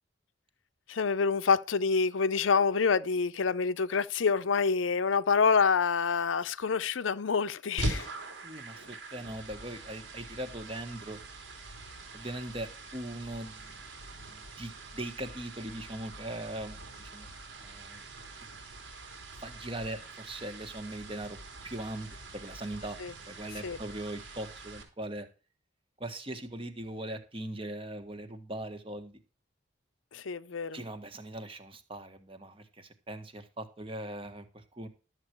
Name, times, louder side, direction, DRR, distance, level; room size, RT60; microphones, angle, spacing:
voice 1, 0.9-8.1 23.0-23.1 23.6-23.8 30.1-30.8, left 5 dB, 85° left, 0.6 m, -27 dB
sound 1, 7.8-24.8, right 2 dB, 75° right, 3.5 m, -43 dB
voice 2, 8.4-11.2 11.6-13.8 14.3-17.3 17.6-18.0 18.4-18.5 19.4-21.4 21.6-23.0 23.3-25.3 26.0-29.2 30.7-34.9, right 1 dB, 30° right, 1.6 m, -40 dB
13.0 x 8.0 x 4.6 m
head